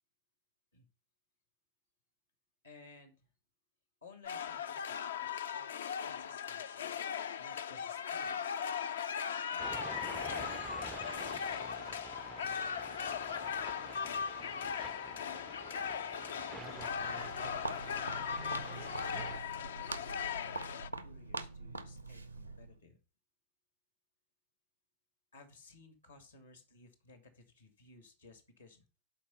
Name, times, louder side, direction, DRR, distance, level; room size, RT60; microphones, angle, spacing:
voice 1, 2.6-3.3 4.0-5.7 6.0-7.0 7.4-8.5 9.5-12.6 13.5-15.6 18.5-23.0 25.3-28.9, left 3 dB, 80° left, 8 dB, 2.2 m, -59 dB
sound 1, 4.2-20.9, left 7 dB, 65° left, 0.4 m, -38 dB
sound 2, 9.6-19.4, right 7 dB, 20° right, 0.3 m, -49 dB
Walk footsteps, 16.8-22.8, right 2 dB, 85° right, 0.7 m, -44 dB
12.0 x 4.4 x 5.6 m, 0.34 s
figure-of-eight pair, 90°, 0 cm